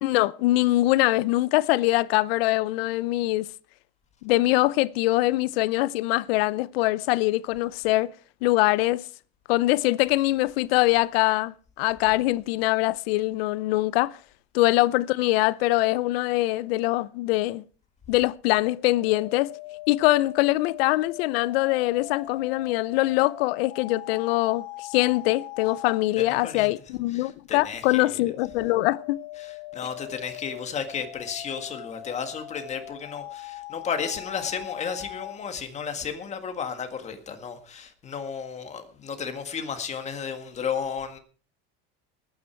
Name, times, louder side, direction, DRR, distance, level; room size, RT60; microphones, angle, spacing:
voice 1, 0.0-3.5 4.2-8.1 8.4-9.0 9.5-14.2 14.5-17.6 18.1-19.5 19.9-29.2, left 18 dB, 75° left, 0.7 m, -23 dB
sound 1, 18.7-26.1 28.1-35.4, left 16 dB, 55° left, 2.1 m, -41 dB
voice 2, 26.2-26.7 27.1-28.2 29.4-41.2, left 6 dB, 20° left, 1.9 m, -33 dB
20.0 x 9.3 x 4.6 m
supercardioid pair, 155°, 30 cm